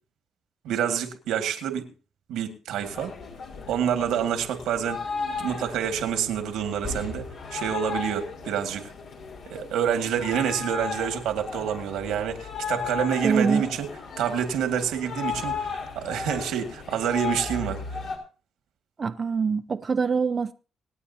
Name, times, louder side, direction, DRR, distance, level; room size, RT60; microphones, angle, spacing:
voice 1, 0.6-1.9 2.3-3.1 3.7-5.0 5.4-8.9 9.5-13.9 14.2-17.8, right 8 dB, 90° right, 2.0 m, -27 dB
sound 1, 2.8-18.2, left 5 dB, 70° left, 3.7 m, -35 dB
voice 2, 13.2-13.6 19.0-20.5, right 5 dB, 35° right, 0.5 m, -24 dB
26.0 x 8.8 x 2.8 m
cardioid pair, 90°, 0 cm